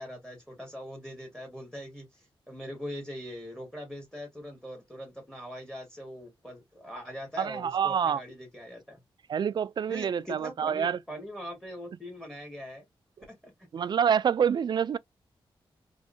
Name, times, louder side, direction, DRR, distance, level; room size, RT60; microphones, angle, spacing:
voice 1, 0.0-9.0 9.9-12.9 13.3-13.5, equal, 5° left, 1.8 m, -42 dB
voice 2, 7.4-8.2 9.3-11.0 13.7-15.0, right 7 dB, 50° right, 0.3 m, -27 dB
3.6 x 3.1 x 2.6 m
wide cardioid pair, 115°, 9 cm